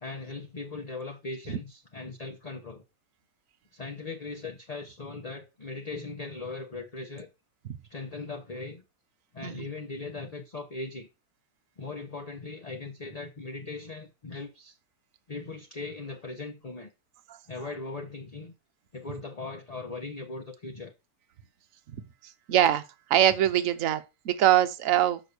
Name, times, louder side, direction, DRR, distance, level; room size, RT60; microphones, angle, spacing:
voice 1, 0.0-2.8 3.7-7.3 7.9-8.8 9.3-11.1 11.8-14.7 15.3-16.9 17.5-18.5 18.9-20.9, left 3 dB, 30° left, 0.8 m, -39 dB
voice 2, 21.9-22.8 23.1-25.2, right 11 dB, 60° right, 1.1 m, -24 dB
6.3 x 6.1 x 6.8 m
omnidirectional pair, 1.8 m